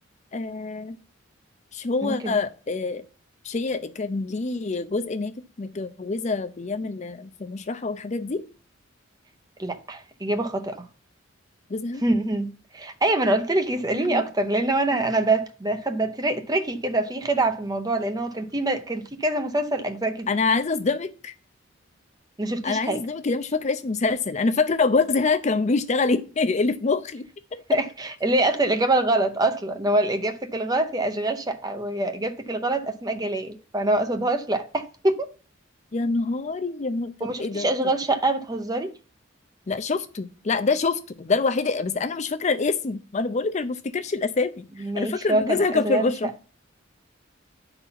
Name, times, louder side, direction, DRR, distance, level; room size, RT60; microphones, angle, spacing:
voice 1, 0.3-1.0 1.7-3.0 3.4-8.5 11.7-12.0 13.9-14.3 20.3-21.3 22.6-27.3 35.9-37.7 39.7-44.7 45.0-46.5, left 4 dB, 35° left, 0.5 m, -26 dB
voice 2, 2.0-2.4 9.6-10.9 12.0-12.5 12.7-20.3 22.4-23.0 27.7-35.3 37.2-38.9 44.8-46.1, right 2 dB, 20° right, 0.7 m, -25 dB
10.0 x 4.0 x 5.7 m
head